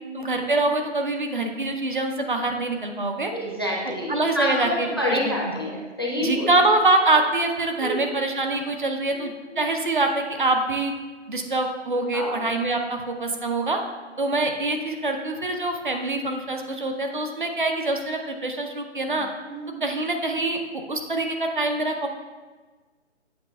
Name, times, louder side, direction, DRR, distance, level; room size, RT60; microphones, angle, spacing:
voice 1, 0.1-3.3 4.1-5.3 6.2-10.9 11.3-13.8 14.2-19.3 19.8-22.1, right 2 dB, 45° right, 4 dB, 0.6 m, -25 dB
voice 2, 3.3-6.5 7.8-8.0 9.1-9.7 11.9-12.5 19.1-19.2 19.4-19.8, equal, 20° left, -3 dB, 0.6 m, -29 dB
7.9 x 3.3 x 5.3 m, 1.3 s
hypercardioid pair, 170°, 36 cm